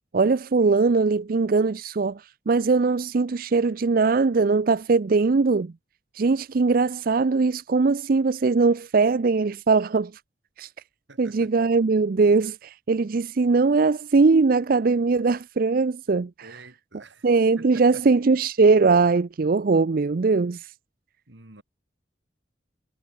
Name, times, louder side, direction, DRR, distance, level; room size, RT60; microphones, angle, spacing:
voice 1, 0.1-5.7 6.1-10.1 10.6-10.7 11.2-16.6 17.2-20.7, right 4 dB, 50° right, 0.5 m, -21 dB
voice 2, 11.1-11.5 16.4-17.3 17.5-18.0 21.3-21.6, right 3 dB, 80° right, 3.2 m, -47 dB
head